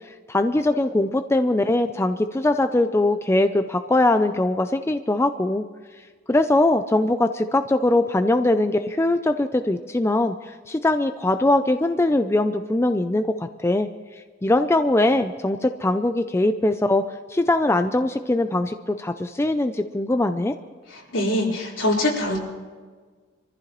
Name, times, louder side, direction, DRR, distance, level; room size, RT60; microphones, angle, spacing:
voice 1, 0.3-5.6 6.3-13.9 14.4-17.0 17.3-20.5, left 2 dB, 15° left, 8 dB, 0.4 m, -21 dB
voice 2, 21.1-22.4, left 1 dB, 70° left, -4 dB, 4.1 m, -23 dB
24.5 x 14.5 x 3.1 m, 1.5 s
head